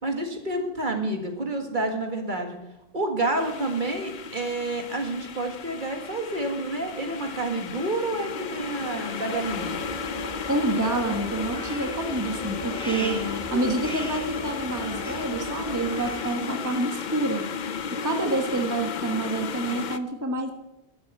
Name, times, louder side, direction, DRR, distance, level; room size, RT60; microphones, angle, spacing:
voice 1, 0.0-2.6 2.9-9.8 12.9-14.0, right 2 dB, 50° right, 4 dB, 1.9 m, -29 dB
sound 1, 3.4-20.0, left 6 dB, 50° left, 0.7 m, -34 dB
sound 2, 8.3-16.0, right 1 dB, 25° left, 1.2 m, -40 dB
sound 3, 9.4-16.3, right 1 dB, 5° left, 1.7 m, -40 dB
voice 2, 10.5-13.2 13.5-17.4 17.9-20.5, right 2 dB, 20° right, 3 dB, 1.2 m, -28 dB
12.5 x 7.8 x 9.1 m, 0.95 s
omnidirectional pair, 1.1 m